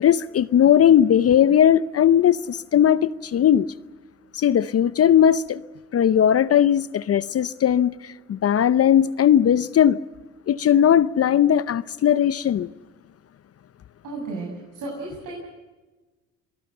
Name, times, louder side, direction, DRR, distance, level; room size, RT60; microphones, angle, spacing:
voice 1, 0.0-3.7 4.3-5.6 5.9-10.0 10.5-12.7, left 9 dB, 45° left, 0.7 m, -18 dB
voice 2, 14.0-15.3, right 3 dB, 65° right, 7.8 m, -33 dB
24.5 x 18.5 x 7.8 m
supercardioid pair, 80°, 35 cm